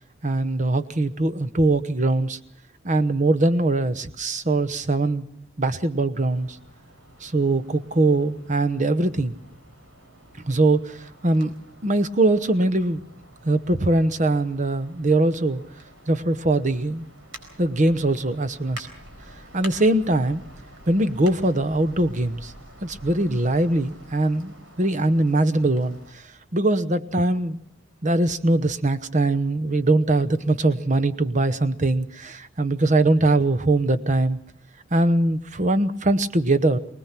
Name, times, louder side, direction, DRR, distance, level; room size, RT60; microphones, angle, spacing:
voice 1, 0.2-2.4 2.8-5.3 5.6-6.6 7.2-9.3 10.4-11.5 11.8-13.0 13.4-15.6 16.1-17.1 17.6-18.9 19.5-20.4 20.9-22.5 22.8-26.2 26.5-27.6 28.0-34.4 34.9-36.8, right 2 dB, 35° right, 12 dB, 1.0 m, -22 dB
sound 1, 6.1-26.1, right 1 dB, 70° right, 4.5 m, -47 dB
24.0 x 19.0 x 5.9 m, 0.65 s
head